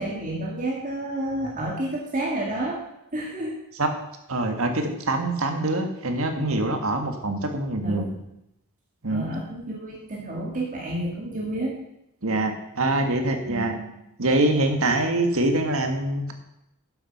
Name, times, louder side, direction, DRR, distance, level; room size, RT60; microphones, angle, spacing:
voice 1, 0.0-2.8 3.1-3.5 7.8-8.2 9.1-11.8 13.5-13.9, right 1 dB, 35° right, -3 dB, 2.0 m, -30 dB
voice 2, 4.3-8.1 9.0-9.3 12.2-13.8 14.2-16.3, right 2 dB, 65° right, 5 dB, 1.7 m, -24 dB
11.5 x 7.5 x 5.5 m, 0.85 s
head